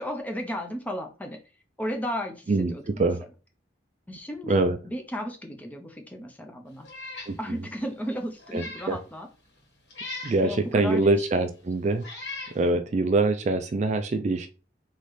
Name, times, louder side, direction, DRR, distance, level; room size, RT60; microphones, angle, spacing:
voice 1, 0.0-1.4 1.8-3.0 4.1-6.9 7.4-9.3 10.4-11.5, equal, 10° left, 3 dB, 0.7 m, -34 dB
voice 2, 2.5-3.2 4.5-4.8 7.3-7.6 8.5-9.0 10.2-12.0 12.5-14.5, right 2 dB, 40° right, 8 dB, 0.3 m, -24 dB
Meow, 6.8-7.3 7.8-7.9 8.4-8.9 9.9-10.4 11.3-11.4 12.0-12.6, left 2 dB, 80° left, 1.8 m, -38 dB
4.0 x 3.1 x 3.2 m, 0.33 s
head